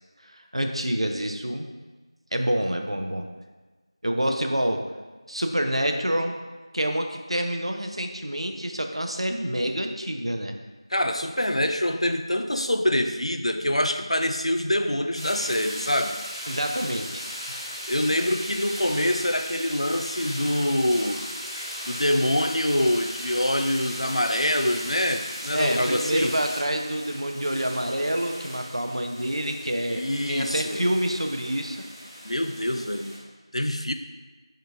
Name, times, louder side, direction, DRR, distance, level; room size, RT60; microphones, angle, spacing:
voice 1, 0.2-1.7 2.3-3.2 4.0-4.8 5.3-6.4 6.7-10.6 16.5-17.2 25.5-31.9, right 1 dB, 70° right, 4 dB, 0.4 m, -27 dB
voice 2, 10.9-16.2 17.9-21.2 21.9-26.4 30.0-30.8 32.2-33.1 33.5-33.9, left 1 dB, 90° left, 7 dB, 0.3 m, -25 dB
sound 1, 15.1-26.6, equal, 35° left, 0.8 m, -36 dB
sound 2, 24.7-33.2, equal, 20° right, 0.9 m, -44 dB
3.7 x 2.8 x 3.4 m, 1.3 s
figure-of-eight pair, 175°, 3 cm